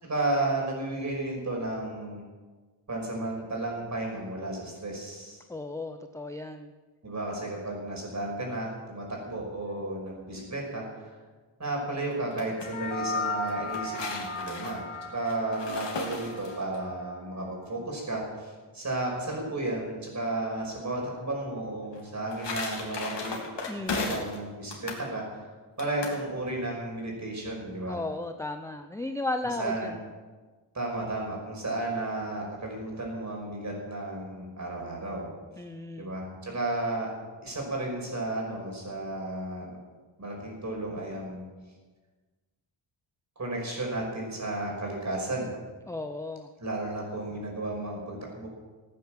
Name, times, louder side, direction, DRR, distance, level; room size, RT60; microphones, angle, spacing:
voice 1, 0.0-2.2 2.9-5.4 7.0-11.1 11.6-23.4 23.9-25.5 25.8-28.0 29.6-29.9 30.7-35.3 36.0-37.1 37.4-39.7 40.2-41.4 43.4-45.5 46.6-48.5, right 2 dB, 35° right, -1 dB, 5.5 m, -33 dB
voice 2, 5.5-6.7 23.7-24.2 27.9-30.0 35.6-36.1 45.9-46.5, left 2 dB, 5° left, 7 dB, 0.6 m, -35 dB
sound 1, 12.1-12.7 13.5-16.8 21.9-24.4 24.7-25.1 25.8-26.2, left 3 dB, 60° left, 3.2 m, -36 dB
sound 2, 12.6-17.2, left 2 dB, 80° left, 1.9 m, -36 dB
16.5 x 9.3 x 7.5 m, 1.4 s
wide cardioid pair, 100°, 48 cm